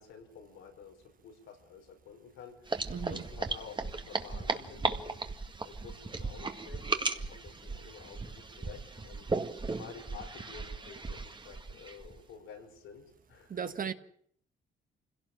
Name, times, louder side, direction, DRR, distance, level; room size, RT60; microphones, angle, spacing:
voice 1, 0.0-5.2 5.6-9.3 9.6-13.9, left 6 dB, 90° left, 5.5 m, -51 dB
sound 1, 2.7-12.2, right 3 dB, 25° right, 1.9 m, -36 dB
voice 2, 2.9-3.2 13.5-13.9, right 7 dB, 45° right, 1.4 m, -36 dB
25.5 x 17.5 x 7.5 m
cardioid pair, 90°, 20 cm